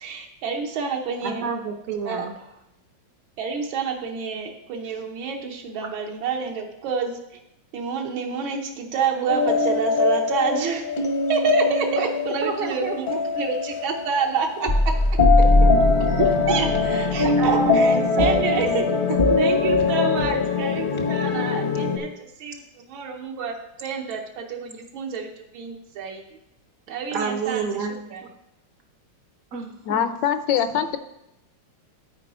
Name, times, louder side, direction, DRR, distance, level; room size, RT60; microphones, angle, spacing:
voice 1, 0.0-1.5 2.0-2.3 3.4-7.2 7.7-10.8 11.3-14.9 16.5-16.7 17.1-18.9 19.4-22.6 22.9-25.3 25.5-26.2 26.9-27.6 28.1-28.2, right 5 dB, 90° right, 1 dB, 1.7 m, -28 dB
voice 2, 1.2-2.4 12.4-13.4 16.0-19.5 27.1-28.3 29.5-30.1, right 5 dB, 70° right, 4 dB, 0.8 m, -30 dB
sound 1, 9.3-22.0, left 3 dB, 45° left, 0.6 m, -21 dB
voice 3, 29.9-31.0, left 9 dB, 75° left, 10 dB, 1.2 m, -23 dB
12.5 x 4.6 x 4.2 m, 0.89 s
omnidirectional pair, 2.2 m